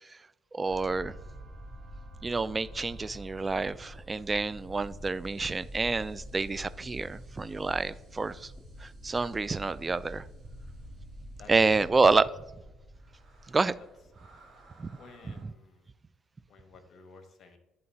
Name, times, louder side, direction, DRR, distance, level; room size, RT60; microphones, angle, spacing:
voice 1, 0.5-1.1 2.2-8.5 8.8-10.3 11.5-12.3 13.5-13.7 14.8-14.9, right 3 dB, 25° right, 17 dB, 0.3 m, -28 dB
sound 1, 0.6-15.4, equal, 45° right, 2.2 m, -47 dB
voice 2, 14.9-15.9 16.5-17.6, left 4 dB, 55° left, 6 dB, 1.2 m, -53 dB
10.5 x 3.8 x 2.8 m, 0.99 s
supercardioid pair, 80°, 0 cm